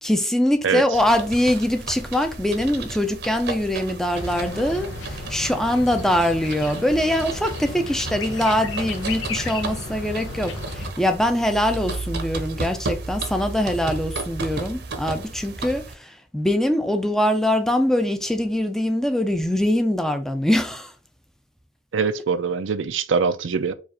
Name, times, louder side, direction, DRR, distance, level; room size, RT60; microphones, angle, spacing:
voice 1, 0.0-20.9, left 1 dB, ahead, 0.5 m, -23 dB
sound 1, 0.9-15.9, right 3 dB, 60° right, 0.8 m, -34 dB
sound 2, 4.1-10.9, left 3 dB, 85° left, 0.7 m, -34 dB
voice 2, 21.9-23.7, right 5 dB, 90° right, 0.5 m, -23 dB
4.8 x 2.5 x 4.2 m
head